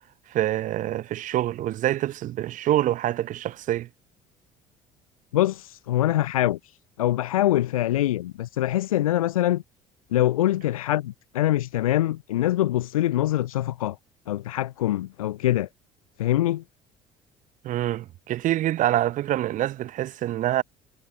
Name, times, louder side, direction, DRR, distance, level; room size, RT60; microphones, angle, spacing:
voice 1, 0.3-3.9 17.6-20.6, right 13 dB, 45° right, 0.8 m, -26 dB
voice 2, 5.3-9.6 10.1-14.0 14.3-15.7 16.2-16.6, left 14 dB, 80° left, 0.4 m, -24 dB
figure-of-eight pair, 55°, 18 cm